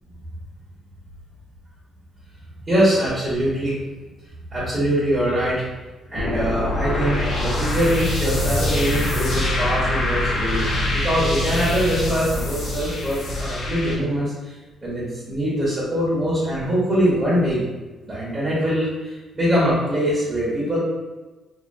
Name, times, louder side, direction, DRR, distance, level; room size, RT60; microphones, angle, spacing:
voice 1, 2.7-3.8 4.5-5.7 6.1-14.5 14.8-17.6 18.0-20.8, equal, 30° right, -9 dB, 1.4 m, -23 dB
sound 1, 6.1-14.0, left 1 dB, 65° left, 1.0 m, -24 dB
3.0 x 2.6 x 2.6 m, 1.2 s
cardioid pair, 90°, 0 cm